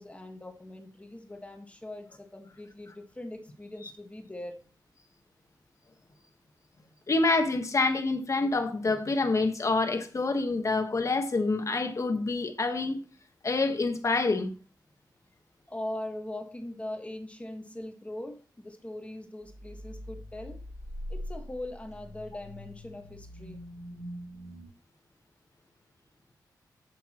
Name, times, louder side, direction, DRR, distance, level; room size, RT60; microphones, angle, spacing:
voice 1, 0.0-4.6 15.7-20.6 21.1-23.6, left 1 dB, 15° left, 1.6 m, -41 dB
voice 2, 7.1-13.0 13.4-14.5, left 3 dB, 45° left, 1.3 m, -27 dB
Logan's Run, 19.4-24.7, equal, 60° right, 4.7 m, -42 dB
8.1 x 8.0 x 3.0 m
cardioid pair, 80°, 7 cm